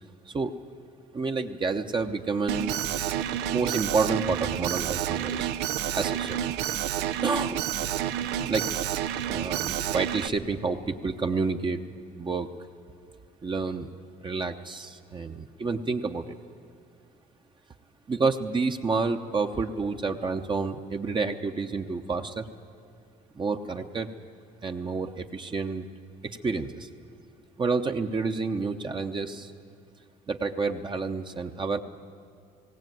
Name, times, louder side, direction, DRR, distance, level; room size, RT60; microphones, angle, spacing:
voice 1, 1.1-2.8 3.5-5.5 5.9-6.4 7.2-7.6 8.5-8.8 9.3-11.8 12.2-12.5 13.4-13.9 14.2-16.3 18.1-22.5 23.3-24.1 24.6-25.9 26.2-26.9 27.6-29.5 30.3-31.8, right 4 dB, 30° right, 5 dB, 0.9 m, -29 dB
Alarm, 2.5-10.3, right 11 dB, 90° right, 0.7 m, -29 dB
19.0 x 16.5 x 9.2 m, 2.5 s
cardioid pair, 110°, 17 cm